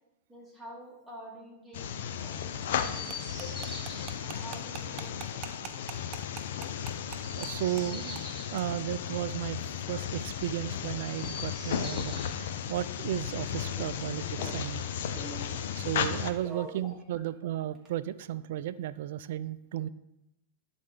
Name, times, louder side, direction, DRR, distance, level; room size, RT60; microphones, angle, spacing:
voice 1, 0.3-3.1 3.4-3.5 4.2-5.4 13.7-14.1 14.3-14.7 15.1-15.4 16.4-16.9, right 1 dB, ahead, -7 dB, 3.1 m, -46 dB
sound 1, 1.7-16.3, left 8 dB, 70° left, 0.6 m, -35 dB
Chirp tweet, 2.7-4.1 7.1-8.5 10.9-12.3 13.8-14.8 15.9-16.8, left 2 dB, 15° left, 3.1 m, -45 dB
sound 2, 3.1-7.5 7.8-7.9 8.1-8.3 8.6-8.7, right 9 dB, 40° right, 0.7 m, -43 dB
voice 2, 7.4-8.2 8.5-9.6 9.9-14.2 14.5-14.8 15.8-19.9, right 12 dB, 70° right, 15 dB, 0.4 m, -34 dB
11.0 x 4.3 x 3.8 m, 0.88 s
hypercardioid pair, 120°, 0 cm